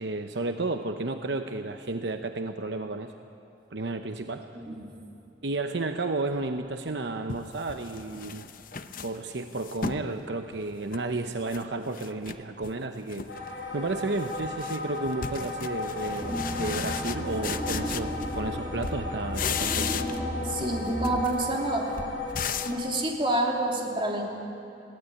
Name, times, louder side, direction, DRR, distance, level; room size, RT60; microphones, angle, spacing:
voice 1, 0.0-3.1 3.7-4.5 5.4-8.4 9.0-13.4 13.7-20.0, right 2 dB, 70° right, 7 dB, 0.8 m, -32 dB
sound 1, 6.6-6.7 7.3-10.1 10.5-11.6 11.9-12.8 13.1-13.5 13.8-18.6 18.8-20.3 20.6-22.8, left 6 dB, 50° left, 0.8 m, -36 dB
sound 2, 13.3-22.7, left 2 dB, 70° left, 7.0 m, -36 dB
sound 3, 16.2-21.3, equal, 10° right, 2.5 m, -34 dB
voice 2, 20.4-22.1 22.6-24.2, right 1 dB, 30° right, 0 dB, 3.0 m, -28 dB
21.5 x 16.5 x 10.0 m, 2.6 s
head